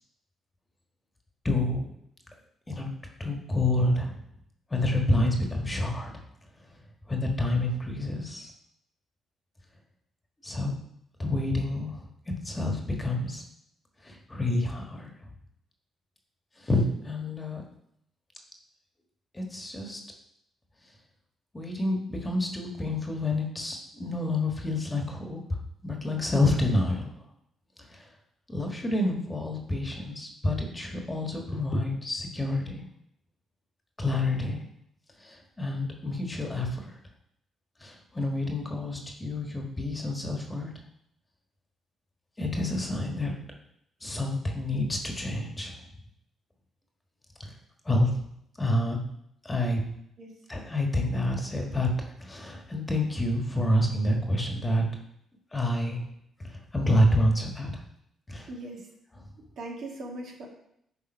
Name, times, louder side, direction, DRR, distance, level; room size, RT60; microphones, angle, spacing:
voice 1, 1.4-1.9 2.7-2.9 3.2-4.1 4.7-6.1 7.1-8.5 10.4-10.7 11.2-12.0 12.4-13.4 14.0-15.1 16.6-17.6 19.3-20.0 21.5-25.4 25.8-27.1 27.9-28.0 28.5-32.8 34.0-34.6 35.2-36.9 37.8-40.7 42.4-43.3 44.0-45.8 47.8-48.2 48.6-49.0 49.4-49.8 50.5-51.9 52.2-54.8 55.5-56.0 56.4-57.7 58.3-58.5, left 1 dB, 20° left, 2 dB, 1.4 m, -28 dB
voice 2, 58.5-58.8 59.6-60.5, right 2 dB, 70° right, 0 dB, 1.8 m, -39 dB
9.0 x 3.4 x 5.4 m, 0.74 s
cardioid pair, 90°, 0 cm